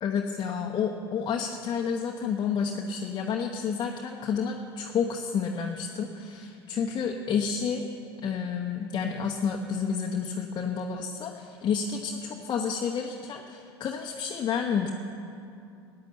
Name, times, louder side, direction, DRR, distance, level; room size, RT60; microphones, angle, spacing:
voice 1, 0.0-7.9 8.2-14.9, left 6 dB, 35° left, 2 dB, 1.1 m, -30 dB
14.5 x 9.9 x 8.0 m, 2.6 s
hypercardioid pair, 80°, 14 cm